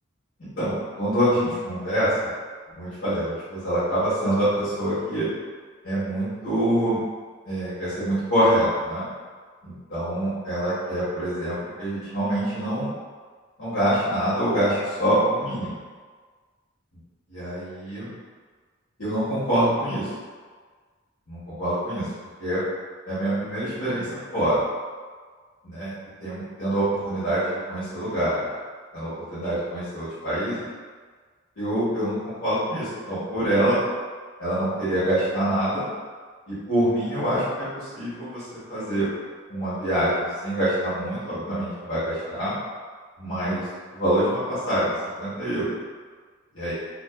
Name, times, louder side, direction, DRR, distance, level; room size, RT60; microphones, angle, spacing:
voice 1, 0.4-2.1 2.8-5.3 5.8-7.0 7.5-9.1 9.6-12.9 13.6-15.8 17.3-18.1 19.0-20.1 21.3-22.1 22.4-22.6 23.0-24.6 25.6-25.9 26.2-28.4 28.9-30.6 31.6-33.8 34.4-35.9 36.5-39.1 39.5-42.5 43.2-43.6 43.9-44.9 45.2-45.7 46.5-46.7, right 1 dB, 90° left, -13 dB, 1.1 m, -25 dB
2.5 x 2.5 x 2.3 m, 1.5 s
head